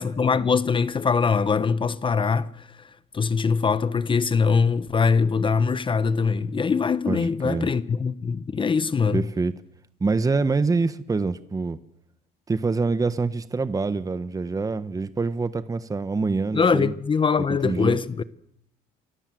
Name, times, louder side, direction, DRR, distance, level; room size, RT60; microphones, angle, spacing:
voice 1, 0.0-2.9 3.1-9.3 16.5-18.2, left 5 dB, 30° left, 1.2 m, -22 dB
voice 2, 7.1-7.7 9.1-9.6 10.0-11.8 12.5-16.9 17.6-18.0, right 4 dB, 20° right, 1.3 m, -25 dB
28.5 x 24.5 x 7.8 m
cardioid pair, 110°, 17 cm